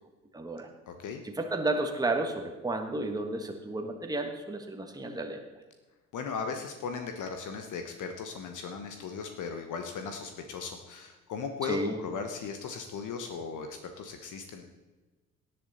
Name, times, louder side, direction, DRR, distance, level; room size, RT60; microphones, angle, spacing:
voice 1, 0.3-0.7 1.2-5.4 11.6-12.0, right 2 dB, 10° right, 4 dB, 1.6 m, -32 dB
voice 2, 0.9-1.2 6.1-14.6, left 5 dB, 50° left, 5 dB, 1.3 m, -37 dB
17.5 x 7.8 x 4.2 m, 1.2 s
figure-of-eight pair, 50°, 38 cm